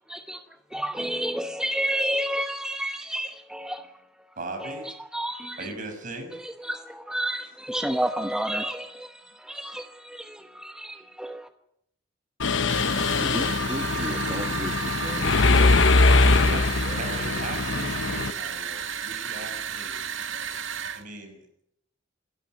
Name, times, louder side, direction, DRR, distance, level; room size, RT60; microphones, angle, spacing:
voice 1, 0.1-0.4 0.7-4.0 4.6-5.7 6.3-11.5, right 1 dB, 5° right, 1.0 m, -31 dB
voice 2, 4.3-4.9 5.6-6.4 16.5-16.6 16.9-20.2 20.9-21.4, right 2 dB, 45° right, 6.6 m, -38 dB
Mechanisms, 12.4-18.3, left 3 dB, 85° left, 1.0 m, -22 dB
voice 3, 12.7-15.8 16.1-17.0, right 1 dB, 25° right, 1.6 m, -36 dB
sound 1, 12.7-21.0, right 8 dB, 85° right, 1.7 m, -33 dB
27.0 x 12.5 x 9.6 m
head